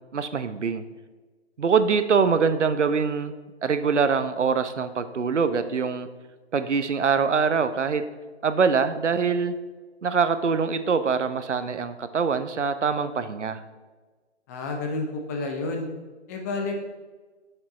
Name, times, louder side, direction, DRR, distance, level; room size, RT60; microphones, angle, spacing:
voice 1, 0.1-0.8 1.6-3.3 3.6-6.1 6.5-8.0 8.4-9.5 10.0-13.6, right 5 dB, 90° right, 11 dB, 0.8 m, -24 dB
voice 2, 14.5-15.9 16.3-16.8, left 2 dB, 15° left, 2 dB, 0.6 m, -30 dB
8.6 x 6.8 x 4.2 m, 1.3 s
hypercardioid pair, 145°, 35 cm